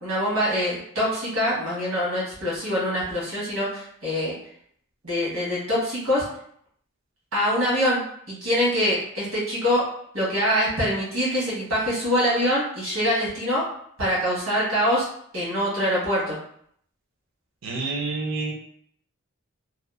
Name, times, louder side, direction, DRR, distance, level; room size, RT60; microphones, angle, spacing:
voice 1, 0.0-4.3 5.0-6.2 7.3-8.0 8.3-9.8 10.1-13.6 14.0-15.1 15.3-16.4, equal, 85° right, -6 dB, 1.3 m, -24 dB
voice 2, 17.6-18.5, right 3 dB, 65° right, 0 dB, 0.6 m, -28 dB
2.7 x 2.3 x 2.4 m, 0.66 s
head